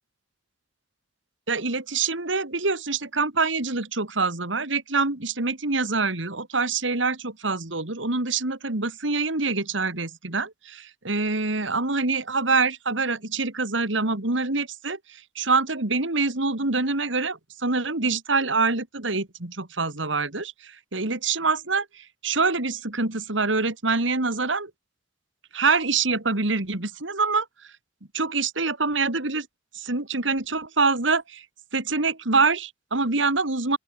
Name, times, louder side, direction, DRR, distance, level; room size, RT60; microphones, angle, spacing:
voice 1, 1.5-24.7 25.5-27.7 28.1-29.5 29.7-31.4 31.7-33.8, right 4 dB, 80° right, 2.6 m, -25 dB
open air
head